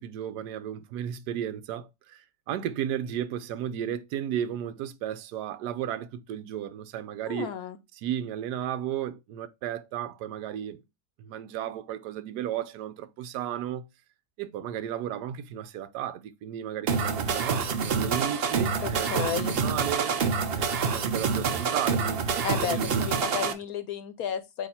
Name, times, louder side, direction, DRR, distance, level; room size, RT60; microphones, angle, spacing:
voice 1, 0.0-7.5 8.0-10.8 11.2-13.9 14.4-20.1 20.5-23.1 23.4-23.6, right 10 dB, 80° right, 1.2 m, -34 dB
voice 2, 7.3-7.8 18.8-19.6 22.4-24.7, left 8 dB, 70° left, 1.1 m, -33 dB
sound 1, 16.9-23.5, right 5 dB, 55° right, 0.7 m, -27 dB
8.3 x 2.8 x 4.2 m
omnidirectional pair, 1.7 m